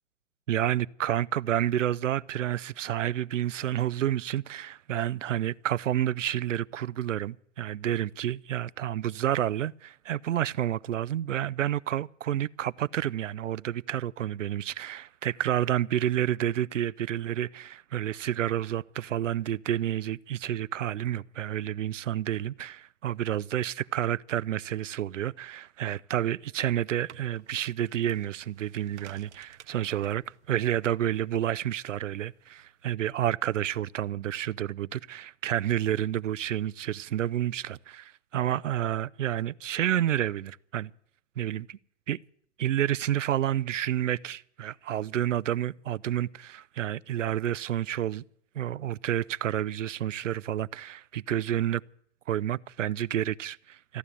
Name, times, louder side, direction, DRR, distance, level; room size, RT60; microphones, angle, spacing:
voice 1, 0.5-40.9 41.4-41.8 42.1-42.2 42.6-48.2 48.5-51.8 52.3-54.0, right 11 dB, 80° right, 0.6 m, -29 dB
sound 1, 26.7-32.9, right 10 dB, 65° right, 1.1 m, -56 dB
15.0 x 11.0 x 8.5 m
hypercardioid pair, 120°, 37 cm